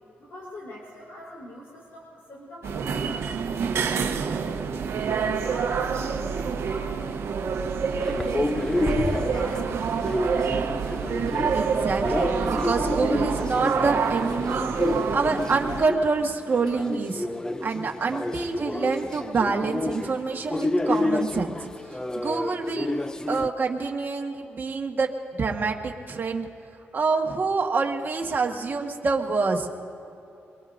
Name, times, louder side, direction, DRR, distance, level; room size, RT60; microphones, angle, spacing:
voice 1, 0.2-3.3 3.7-7.5 8.0-10.7, left 1 dB, 75° left, -5 dB, 3.6 m, -42 dB
sound 1, 2.6-15.8, right 6 dB, 75° right, 0.9 m, -27 dB
sound 2, 8.0-23.5, left 2 dB, 15° left, 0.5 m, -30 dB
sound 3, 8.9-10.7 11.0-11.1, right 2 dB, 10° right, 4.3 m, -33 dB
voice 2, 11.5-14.7 15.1-17.3 17.6-21.7 22.2-22.9 23.3-26.5 26.9-29.7, right 4 dB, 45° right, 2 dB, 1.5 m, -26 dB
24.5 x 21.5 x 2.6 m, 2.8 s
cardioid pair, 85°, 4 cm